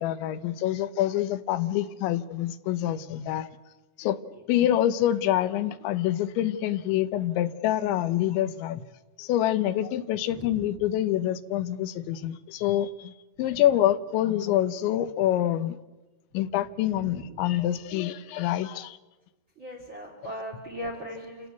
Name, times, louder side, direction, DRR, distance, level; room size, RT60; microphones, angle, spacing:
voice 1, 0.0-3.5 4.0-4.2 4.5-8.8 9.2-13.1 13.4-15.8 16.3-19.0, left 12 dB, 85° left, 12 dB, 3.3 m, -26 dB
voice 2, 10.3-10.7 17.0-17.6 19.6-21.5, equal, 30° right, 2 dB, 3.0 m, -39 dB
28.5 x 17.5 x 8.2 m, 1.1 s
omnidirectional pair, 5.2 m